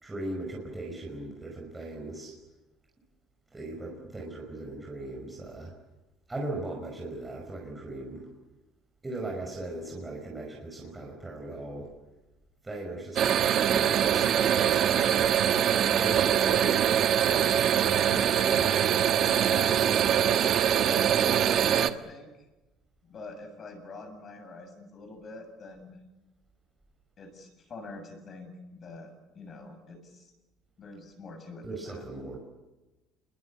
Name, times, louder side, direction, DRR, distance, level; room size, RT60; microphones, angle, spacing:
voice 1, 0.0-2.3 3.5-5.7 6.3-8.3 9.0-11.9 12.6-15.3 16.0-18.7 19.5-20.1 31.6-32.4, right 2 dB, 15° right, -1 dB, 5.5 m, -38 dB
sound 1, 13.2-21.9, right 9 dB, 45° right, 1.4 m, -23 dB
voice 2, 19.3-19.7 20.9-22.3 23.0-26.0 27.2-30.3 30.8-32.0, left 2 dB, 35° left, 7 dB, 7.3 m, -44 dB
28.0 x 22.0 x 8.5 m, 1.1 s
cardioid pair, 130°, 0 cm